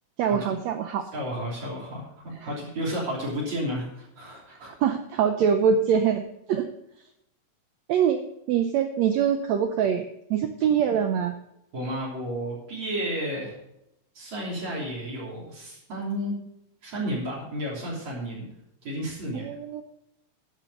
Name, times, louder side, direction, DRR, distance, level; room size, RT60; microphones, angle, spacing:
voice 1, 0.2-1.1 4.6-6.7 7.9-8.2 8.5-10.0 10.3-11.3 19.3-19.8, right 7 dB, 90° right, 8 dB, 1.5 m, -24 dB
voice 2, 1.1-4.8 11.7-13.5 14.1-16.3 16.8-18.5 18.8-19.4, equal, 55° right, -5 dB, 4.5 m, -32 dB
11.5 x 6.2 x 7.8 m, 0.80 s
omnidirectional pair, 4.0 m